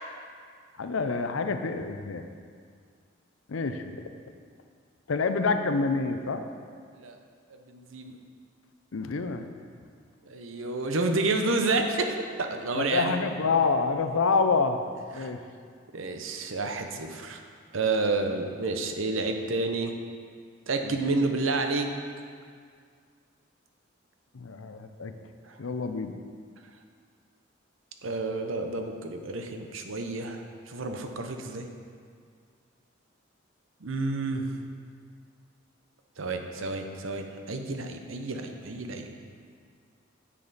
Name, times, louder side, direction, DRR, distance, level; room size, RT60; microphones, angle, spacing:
voice 1, 0.8-2.2 3.5-4.0 5.1-6.4 8.9-9.5 12.8-14.8 15.1-15.4 20.8-21.0 24.3-25.1 25.6-26.1, left 4 dB, 85° left, 8 dB, 0.6 m, -27 dB
voice 2, 7.7-8.2 10.3-13.2 15.2-15.3 15.9-17.4 17.7-19.9 20.7-21.9 25.4-25.6 28.0-31.7 33.8-34.5 36.2-39.1, right 3 dB, 80° right, 5 dB, 0.8 m, -30 dB
9.7 x 6.8 x 4.1 m, 2.1 s
head